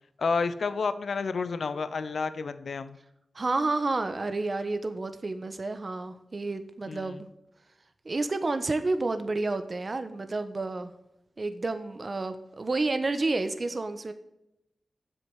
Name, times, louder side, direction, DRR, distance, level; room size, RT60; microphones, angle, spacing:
voice 1, 0.2-3.0 6.9-7.2, left 4 dB, 70° left, 13 dB, 0.9 m, -30 dB
voice 2, 3.3-7.3 8.0-10.9 11.4-14.1, right 3 dB, 50° right, 9 dB, 1.3 m, -30 dB
10.0 x 7.9 x 9.3 m, 0.84 s
cardioid pair, 40°, 0 cm